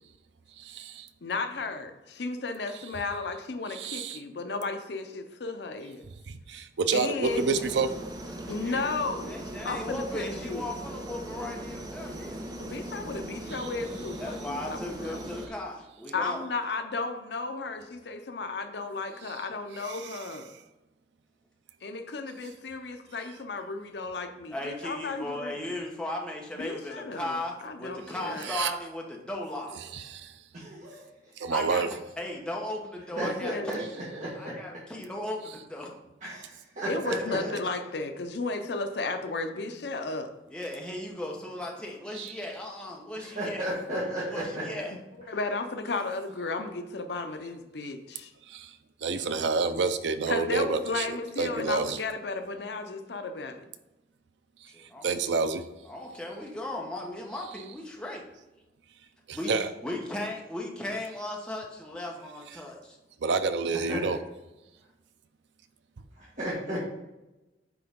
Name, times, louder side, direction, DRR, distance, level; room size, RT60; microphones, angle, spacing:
voice 1, 0.6-1.1 3.7-4.2 6.3-7.9 13.5-13.7 19.9-20.2 28.4-28.7 29.9-30.4 31.4-31.9 42.1-42.3 48.5-48.7 49.0-52.0 54.8-55.6 59.3-59.7 63.2-64.2, right 4 dB, 90° right, 10 dB, 0.5 m, -29 dB
voice 2, 1.2-6.0 6.8-7.5 8.5-10.6 12.6-15.2 16.1-20.5 21.8-25.7 26.6-28.5 33.1-33.7 36.9-40.3 45.1-48.3 50.3-53.7, left 3 dB, 70° left, 7 dB, 0.6 m, -34 dB
sound 1, 7.2-15.5, right 1 dB, 20° right, 0.7 m, -39 dB
voice 3, 8.4-8.9 9.3-12.5 14.2-16.4 24.5-29.8 31.5-31.8 32.2-33.9 34.4-36.0 37.4-37.5 40.5-43.6 44.3-44.9 54.7-55.1 55.9-58.2 59.3-59.6 59.8-63.0, left 1 dB, 5° left, -1 dB, 1.0 m, -37 dB
voice 4, 30.5-31.0 33.2-33.8 34.1-34.5 36.2-37.6 43.2-44.6 63.9-64.2 66.2-66.8, right 1 dB, 45° right, -8 dB, 1.5 m, -34 dB
9.6 x 3.9 x 3.6 m, 1.0 s
head